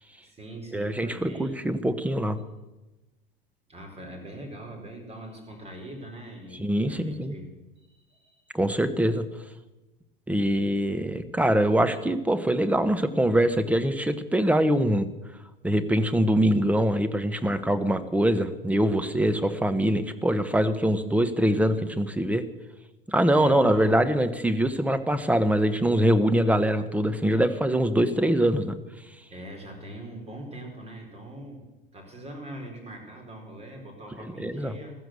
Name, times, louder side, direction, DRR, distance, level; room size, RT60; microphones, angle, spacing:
voice 1, 0.2-1.7 3.7-7.6 7.9-8.5 23.4-23.9 29.3-31.6 31.9-34.9, right 1 dB, 20° right, 3 dB, 4.5 m, -42 dB
voice 2, 0.7-2.4 6.5-7.3 8.5-9.3 10.3-15.1 15.6-22.4 23.1-28.8 34.4-34.7, right 1 dB, 5° right, 10 dB, 1.1 m, -23 dB
15.5 x 13.5 x 6.6 m, 1.1 s
figure-of-eight pair, 80°, 29 cm